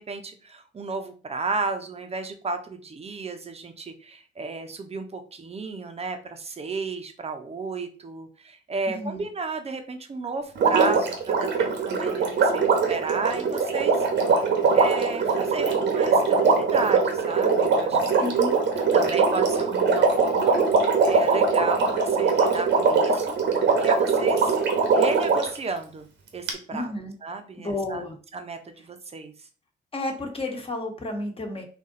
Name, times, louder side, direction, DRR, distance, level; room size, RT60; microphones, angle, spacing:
voice 1, 0.0-18.2 18.9-23.4 23.8-24.6 24.9-26.1 26.3-26.9 27.2-28.0 28.3-29.5, right 3 dB, 30° right, 6 dB, 0.8 m, -33 dB
voice 2, 8.9-9.2 18.2-18.6 26.7-27.1 27.6-28.2 29.9-31.7, left 2 dB, 30° left, 2 dB, 1.3 m, -31 dB
Water, 10.6-25.6 26.5-26.6, right 4 dB, 65° right, 1.1 m, -22 dB
4.2 x 2.6 x 3.8 m, 0.40 s
cardioid pair, 90°, 20 cm